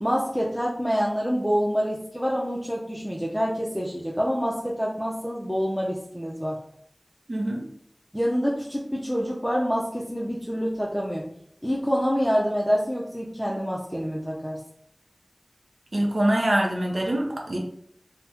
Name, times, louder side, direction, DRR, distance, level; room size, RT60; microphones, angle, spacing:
voice 1, 0.0-6.6 8.1-11.3 11.6-14.6, equal, ahead, -4 dB, 0.5 m, -26 dB
voice 2, 7.3-7.6 15.9-17.6, right 1 dB, 80° right, 0 dB, 0.5 m, -24 dB
3.4 x 2.0 x 2.9 m, 0.67 s
wide cardioid pair, 50°, 0 cm